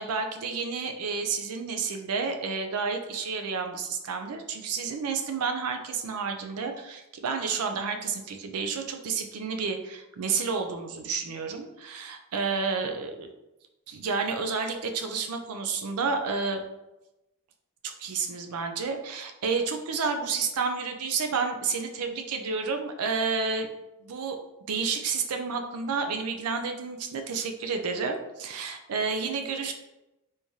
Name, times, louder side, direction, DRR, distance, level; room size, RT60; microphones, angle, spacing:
voice 1, 0.0-13.3 13.9-16.6 17.8-23.7 24.0-24.4 24.7-29.7, right 5 dB, 85° right, 5 dB, 0.5 m, -30 dB
3.5 x 3.1 x 2.7 m, 0.97 s
head